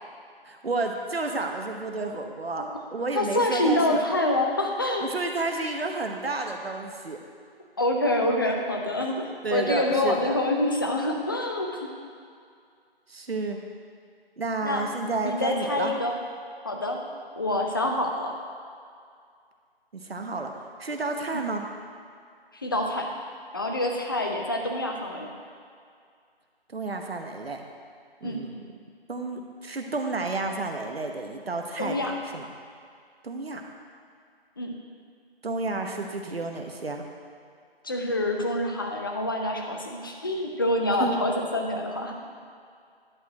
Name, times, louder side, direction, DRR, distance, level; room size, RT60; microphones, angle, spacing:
voice 1, 0.4-4.0 5.0-7.2 9.4-10.4 13.1-13.6 14.4-15.9 19.9-20.5 20.8-21.6 26.7-27.6 28.2-28.6 29.1-32.5 33.2-33.6 35.4-37.0 41.0-41.2, right 3 dB, 75° right, 3 dB, 1.1 m, -31 dB
voice 2, 3.1-5.0 7.8-11.9 14.6-14.8 15.2-16.1 16.6-17.0 17.4-18.3 21.3-21.4 22.6-23.1 23.5-25.3 28.2-28.4 31.8-32.2 34.6-34.7 37.8-42.1, left 1 dB, 20° left, 1 dB, 0.6 m, -26 dB
11.0 x 4.6 x 6.4 m, 2.2 s
figure-of-eight pair, 160°, 31 cm